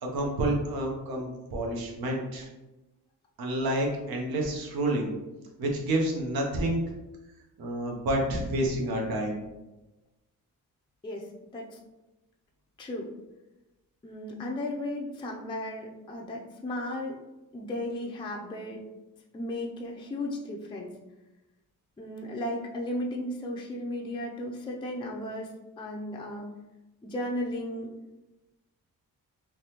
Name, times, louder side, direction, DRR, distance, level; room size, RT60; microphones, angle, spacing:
voice 1, 0.0-2.5 3.4-5.1 5.6-6.8 7.6-9.4, right 1 dB, 85° right, 0 dB, 0.8 m, -29 dB
voice 2, 11.0-11.8 12.8-13.1 14.0-17.2 17.5-18.9 19.3-21.0 22.0-26.6 27.0-27.9, left 1 dB, 15° left, 0 dB, 0.4 m, -35 dB
3.3 x 2.2 x 2.8 m, 1.0 s
cardioid pair, 85°, 36 cm